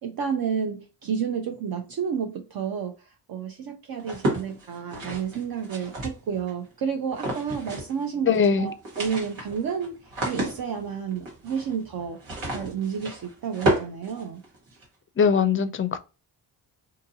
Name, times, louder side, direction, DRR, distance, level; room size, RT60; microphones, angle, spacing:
voice 1, 0.0-12.2 12.5-14.4, right 7 dB, 50° right, 0.6 m, -31 dB
sound 1, 4.0-6.5 7.1-8.0 8.3-8.4 8.7-14.8, right 1 dB, 80° right, 1.5 m, -31 dB
voice 2, 8.3-8.7 15.2-16.0, left 6 dB, 30° left, 0.4 m, -21 dB
2.7 x 2.6 x 2.6 m
supercardioid pair, 55°, 47 cm